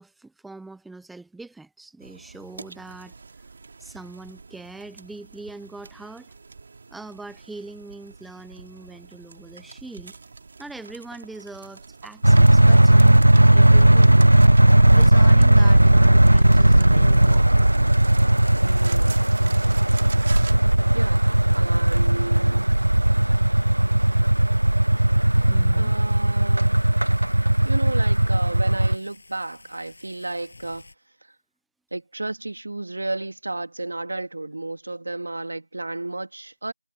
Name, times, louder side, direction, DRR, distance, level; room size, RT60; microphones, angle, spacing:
voice 1, 0.0-3.1 3.8-6.3 6.9-10.1 10.6-13.2 13.5-14.1 14.9-17.8 25.5-25.9, right 3 dB, ahead, 0.5 m, -42 dB
sound 1, 2.0-20.5, right 4 dB, 20° right, 2.5 m, -43 dB
sound 2, 12.2-28.9, right 1 dB, 55° right, 0.7 m, -16 dB
sound 3, 18.4-30.9, left 3 dB, 25° left, 7.2 m, -51 dB
voice 2, 18.6-19.3 20.9-21.3 21.5-22.7 25.7-26.8 27.6-30.9 31.9-36.7, right 2 dB, 35° right, 3.2 m, -32 dB
figure-of-eight pair, 175°, 0 cm